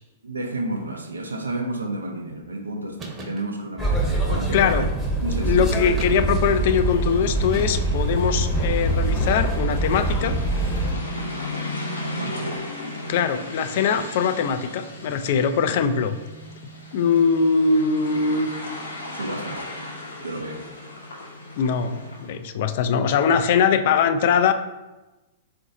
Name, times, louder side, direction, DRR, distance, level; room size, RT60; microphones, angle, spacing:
voice 1, 0.2-4.8 5.2-5.6 12.0-12.6 19.1-19.7 20.2-20.7, right 2 dB, 85° right, 3 dB, 0.6 m, -31 dB
sound 1, 3.0-3.4 4.6-5.1 6.0-6.6 7.5-8.2, right 1 dB, 20° right, 0.9 m, -38 dB
sound 2, 3.8-10.9, right 1 dB, 5° left, 0.8 m, -24 dB
voice 2, 4.5-4.9 5.4-10.4 13.1-16.2 16.9-18.5 21.6-24.5, left 6 dB, 55° left, 9 dB, 0.3 m, -21 dB
sound 3, 6.0-22.4, left 2 dB, 85° left, 0.7 m, -36 dB
3.9 x 2.5 x 4.0 m, 1.1 s
figure-of-eight pair, 105°, 0 cm